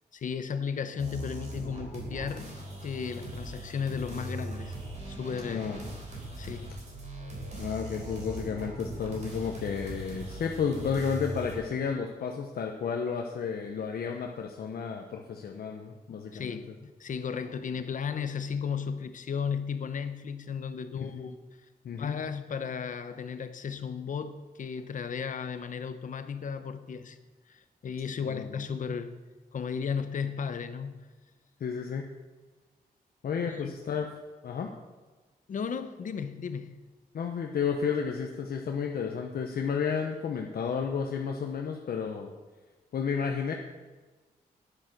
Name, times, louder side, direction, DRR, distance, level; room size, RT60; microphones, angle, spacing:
voice 1, 0.1-2.5 2.8-4.7 5.1-5.7 6.4-6.7 16.1-21.4 22.0-27.2 27.5-29.1 29.5-31.1 33.5-33.8 35.5-36.8, left 6 dB, 55° left, 11 dB, 0.9 m, -35 dB
sound 1, 1.0-11.6, right 1 dB, 45° right, 3.8 m, -40 dB
voice 2, 5.4-5.8 7.6-16.6 21.1-21.2 21.8-22.1 28.2-28.5 31.6-32.1 33.2-34.1 34.4-34.7 37.1-42.3 42.9-43.5, left 6 dB, 70° left, 2 dB, 1.0 m, -32 dB
10.5 x 10.0 x 6.7 m, 1.3 s
wide cardioid pair, 180°, 16 cm